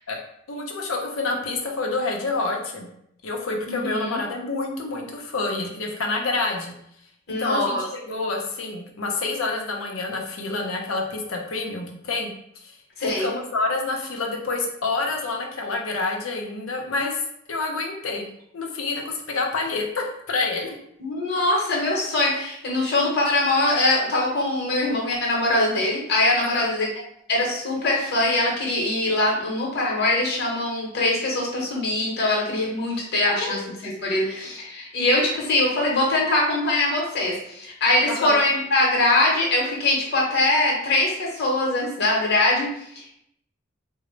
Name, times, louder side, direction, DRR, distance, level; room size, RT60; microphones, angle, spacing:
voice 1, 0.5-2.9 3.2-6.7 7.3-12.3 12.6-17.2 17.5-18.2 18.5-20.7 26.4-26.7 33.3-33.7 38.1-38.4, left 3 dB, 85° left, 1 dB, 0.7 m, -28 dB
voice 2, 3.7-4.2 7.3-7.8 13.0-13.3 21.0-26.9 27.3-43.1, left 2 dB, 55° left, -3 dB, 0.9 m, -22 dB
3.9 x 2.1 x 3.2 m, 0.73 s
head